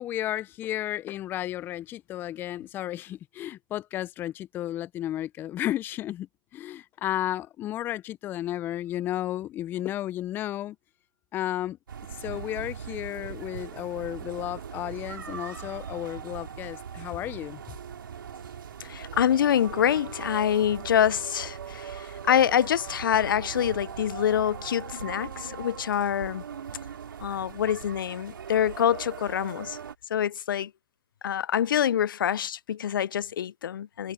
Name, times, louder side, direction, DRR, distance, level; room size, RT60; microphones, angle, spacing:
voice 1, 0.0-6.3 6.5-10.8 11.3-11.8 12.2-17.6, left 13 dB, 20° left, 0.4 m, -33 dB
sound 1, 11.9-30.0, right 7 dB, 80° right, 3.5 m, -40 dB
sound 2, 16.7-24.6, right 20 dB, 45° right, 6.1 m, -55 dB
voice 2, 18.8-26.4 27.2-29.8 30.1-30.7 31.2-34.1, left 9 dB, 75° left, 0.4 m, -26 dB
hypercardioid pair, 140°, 11 cm